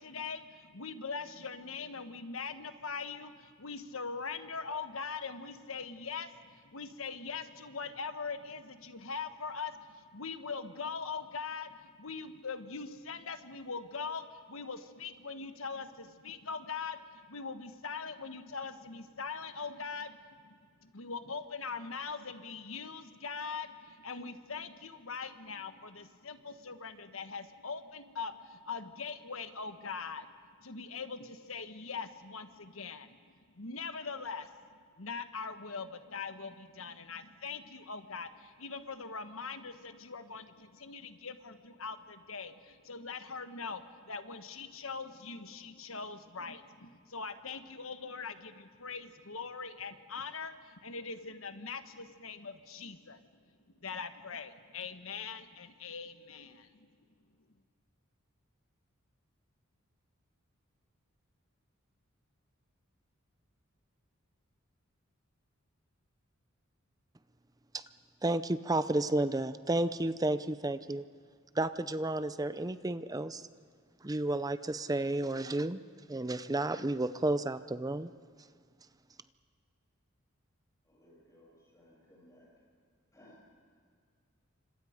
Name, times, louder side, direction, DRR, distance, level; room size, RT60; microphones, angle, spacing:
voice 1, 0.0-30.3 30.6-34.5 34.9-53.2 53.8-56.9, left 5 dB, 70° left, 9 dB, 1.3 m, -42 dB
voice 2, 68.2-71.1 71.5-73.5 74.0-75.8 76.1-78.1, right 2 dB, 15° right, 13 dB, 0.6 m, -32 dB
voice 3, 80.8-82.5 83.1-83.4, left 1 dB, 15° left, -3 dB, 8.0 m, -60 dB
28.5 x 26.0 x 5.1 m, 2.1 s
head